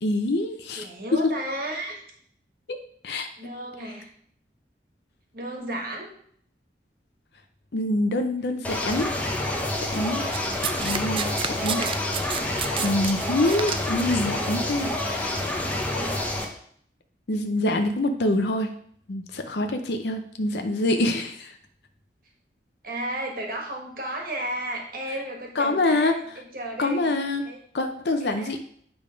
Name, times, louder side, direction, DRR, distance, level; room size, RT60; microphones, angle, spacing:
voice 1, 0.0-0.8 1.1-1.2 2.7-2.8 3.0-3.3 7.7-9.1 9.9-10.2 10.8-11.3 11.6-11.8 12.8-15.4 17.3-18.7 19.1-21.6 25.6-26.4 26.8-27.4 27.7-28.6, left 2 dB, 70° left, 6 dB, 0.6 m, -25 dB
voice 2, 0.7-2.0 3.4-4.1 5.3-6.1 11.2-11.9 12.3-12.8 15.6-16.3 22.8-27.1 27.4-27.6 28.2-28.5, right 1 dB, 50° right, 1 dB, 1.5 m, -34 dB
sound 1, 8.6-16.5, left 1 dB, 10° left, 0.8 m, -28 dB
Domestic sounds home sounds, 10.3-14.3 15.1-15.3, right 7 dB, 30° right, 0.3 m, -31 dB
8.7 x 3.5 x 5.1 m, 0.63 s
head